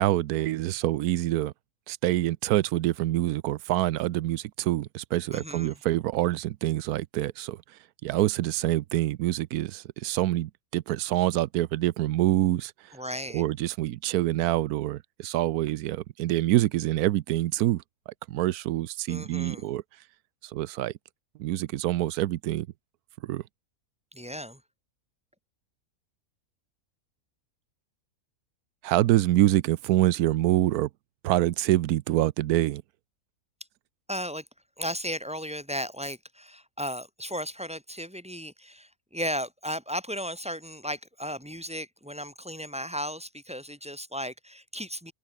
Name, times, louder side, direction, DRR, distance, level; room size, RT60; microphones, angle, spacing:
voice 1, 0.0-1.5 1.9-7.6 8.0-12.7 13.3-17.8 18.3-19.8 20.5-20.9 21.4-22.7 23.2-23.4 28.8-30.9 31.2-32.8, right 15 dB, 90° right, 1.1 m, -26 dB
voice 2, 5.3-5.8 12.9-13.4 19.1-19.7 24.1-24.6 34.1-34.4 34.8-45.1, equal, 5° right, 1.9 m, -35 dB
open air
omnidirectional pair, 1.5 m